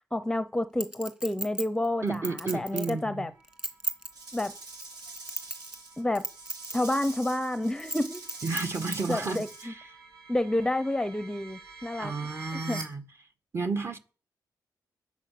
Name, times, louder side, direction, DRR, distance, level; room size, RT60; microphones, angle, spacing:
voice 1, 0.1-2.3 2.5-3.3 4.3-4.5 6.0-6.3 6.7-8.2 9.1-9.7 10.3-12.1 12.5-12.8, left 1 dB, 10° left, 0.8 m, -29 dB
Chink clink, 0.8-3.0 3.4-4.1 4.7-5.9 6.1-6.7 7.0-7.1 7.8-9.0 9.5-9.6, right 1 dB, 15° right, 2.6 m, -35 dB
sound 1, 1.9-12.8, right 4 dB, 55° right, 5.6 m, -50 dB
voice 2, 2.0-3.3 8.4-9.8 12.0-13.0 13.5-14.0, right 4 dB, 35° right, 1.8 m, -32 dB
Rattle / Rattle (instrument), 4.1-9.7, right 3 dB, 85° right, 4.2 m, -44 dB
21.5 x 8.6 x 6.8 m
wide cardioid pair, 115°, 7 cm